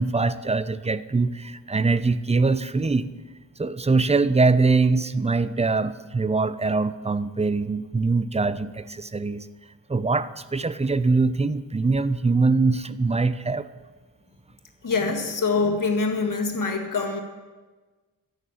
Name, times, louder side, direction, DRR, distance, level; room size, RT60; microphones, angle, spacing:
voice 1, 0.0-3.1 3.6-9.5 9.9-13.7, right 3 dB, 20° right, 14 dB, 0.6 m, -23 dB
voice 2, 14.8-17.2, left 4 dB, 65° left, 3 dB, 2.0 m, -24 dB
14.0 x 6.6 x 8.7 m, 1.3 s
cardioid pair, 70°, 34 cm